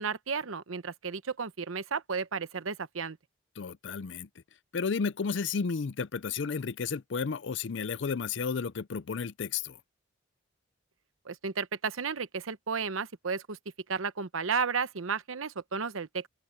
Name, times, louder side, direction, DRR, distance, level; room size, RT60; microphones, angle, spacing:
voice 1, 0.0-3.2 11.2-13.6 13.9-16.3, right 5 dB, 90° right, 0.9 m, -33 dB
voice 2, 3.6-4.3 4.7-9.8, left 5 dB, 65° left, 0.5 m, -32 dB
open air
head